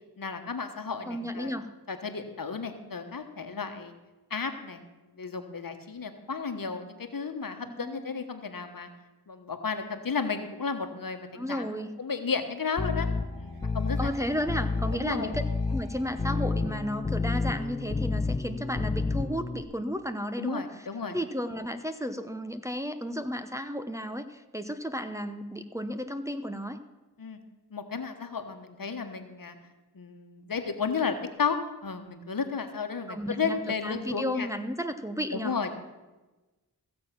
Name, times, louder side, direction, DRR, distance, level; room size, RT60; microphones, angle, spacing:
voice 1, 0.2-1.5 1.9-3.9 4.3-4.8 5.2-8.9 9.3-11.7 12.0-13.1 13.4-14.1 14.9-15.3 20.4-21.2 27.2-27.4 27.7-29.6 29.9-34.5 35.3-35.7, left 5 dB, 60° left, 7 dB, 1.3 m, -33 dB
voice 2, 1.1-1.7 7.7-8.0 11.3-11.9 14.0-15.4 15.7-26.8 33.1-35.5, equal, 10° right, 7 dB, 0.9 m, -33 dB
sound 1, 12.0-18.2 21.7-22.5, right 4 dB, 90° right, 3.6 m, -56 dB
sound 2, 12.8-19.6, left 3 dB, 15° left, 0.4 m, -30 dB
15.5 x 7.6 x 5.9 m, 1.2 s
cardioid pair, 40°, 38 cm